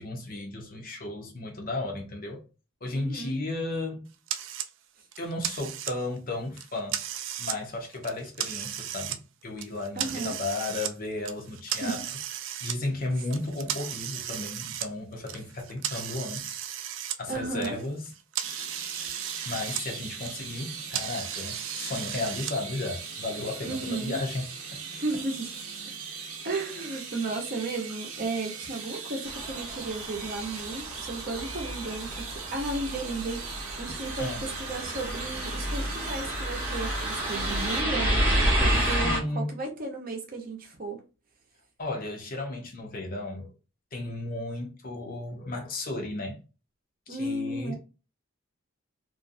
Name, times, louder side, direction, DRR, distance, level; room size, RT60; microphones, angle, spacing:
voice 1, 0.0-2.5 2.8-4.1 5.2-7.0 7.4-12.0 12.6-16.6 17.2-18.1 19.4-24.5 34.2-34.5 38.8-39.5 41.8-43.5 43.9-46.4 47.1-47.7, left 2 dB, 40° left, 0.6 m, -34 dB
voice 2, 2.9-3.3 10.0-10.3 11.8-12.0 17.3-17.8 23.6-24.2 25.0-25.5 26.4-34.3 34.6-41.0 47.1-47.7, right 2 dB, 40° right, 0.7 m, -34 dB
sound 1, 4.3-4.7 5.1-6.2 6.6-7.6 7.9-9.2 9.6-10.9 11.3-12.8 13.3-17.2 17.5-19.8 20.1-22.5, right 10 dB, 60° right, 0.3 m, -35 dB
sound 2, 18.4-37.8, right 5 dB, 80° right, 0.7 m, -40 dB
sound 3, 29.3-39.2, equal, 10° right, 0.8 m, -30 dB
2.5 x 2.2 x 2.5 m
head